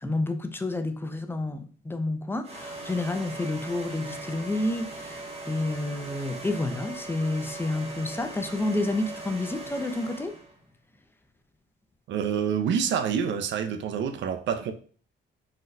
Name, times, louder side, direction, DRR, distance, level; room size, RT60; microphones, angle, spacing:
voice 1, 0.0-5.2 5.5-10.3, left 2 dB, 10° left, 0.3 m, -29 dB
sound 1, 2.4-10.6, right 2 dB, 30° right, 0.7 m, -39 dB
voice 2, 12.1-14.7, right 7 dB, 70° right, 0.4 m, -27 dB
4.0 x 2.1 x 2.5 m
cardioid pair, 90°, 20 cm